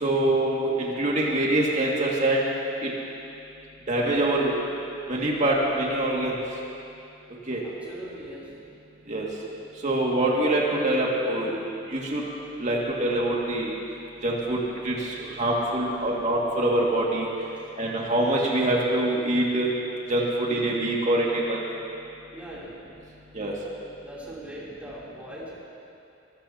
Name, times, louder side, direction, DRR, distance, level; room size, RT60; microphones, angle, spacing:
voice 1, 0.0-2.5 2.8-2.9 3.9-4.5 5.1-6.4 7.5-7.6 9.1-9.3 9.8-11.5 11.9-12.2 12.6-13.7 14.2-17.3 17.8-19.7 20.1-21.6 23.3-23.5, right 1 dB, 40° right, -4 dB, 2.2 m, -24 dB
voice 2, 7.6-8.5 15.9-16.1 17.5-17.7 22.3-22.8 24.0-25.5, right 1 dB, 10° right, -8 dB, 3.4 m, -41 dB
23.0 x 15.5 x 2.9 m, 2.7 s
head